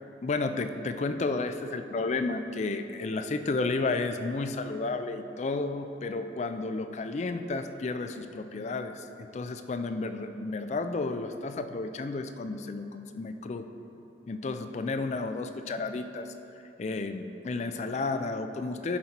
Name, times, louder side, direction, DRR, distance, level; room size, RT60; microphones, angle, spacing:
voice 1, 0.2-13.7 14.3-16.3 16.8-19.0, left 3 dB, 40° left, 9 dB, 0.3 m, -32 dB
11.5 x 4.2 x 4.4 m, 2.9 s
head